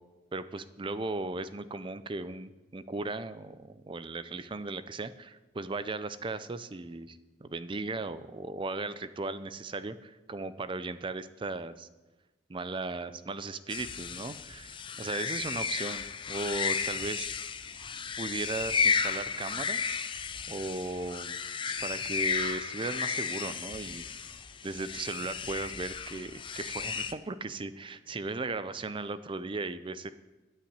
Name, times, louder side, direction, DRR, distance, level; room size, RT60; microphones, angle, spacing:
voice 1, 0.3-11.9 12.5-17.3 18.2-20.0 20.5-21.3 21.8-24.0 24.6-30.1, right 3 dB, 25° right, 13 dB, 0.5 m, -37 dB
sound 1, 13.7-27.1, left 6 dB, 25° left, 0.5 m, -33 dB
13.0 x 5.7 x 8.7 m, 1.2 s
head